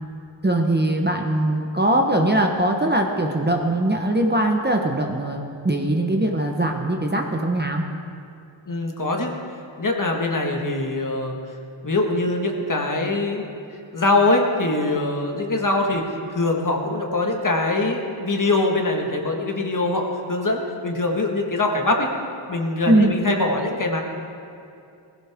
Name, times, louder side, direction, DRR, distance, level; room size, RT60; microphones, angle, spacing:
voice 1, 0.4-7.8 22.9-23.1, right 1 dB, 20° right, 2 dB, 1.0 m, -21 dB
voice 2, 8.7-9.3 9.8-11.4 11.8-13.5 13.9-22.1 22.5-24.0, left 2 dB, 40° left, 1 dB, 1.7 m, -23 dB
19.5 x 16.0 x 3.6 m, 2.5 s
wide cardioid pair, 125°, 50 cm